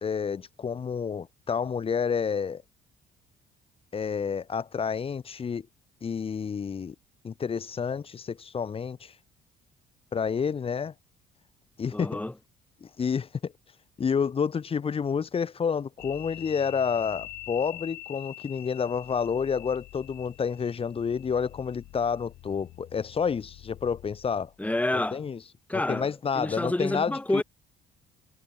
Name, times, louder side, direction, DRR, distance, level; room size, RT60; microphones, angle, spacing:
voice 1, 0.0-2.6 3.9-5.7 6.0-7.0 7.2-9.1 10.1-10.9 11.8-12.2 12.8-13.5 14.0-24.5 25.1-25.4 25.7-27.4, left 6 dB, 35° left, 1.8 m, -29 dB
voice 2, 11.9-12.3 24.6-25.2 25.7-27.4, left 1 dB, 10° left, 6.3 m, -28 dB
sound 1, 16.0-24.6, left 17 dB, 80° left, 6.7 m, -45 dB
cardioid pair, 110°, 17 cm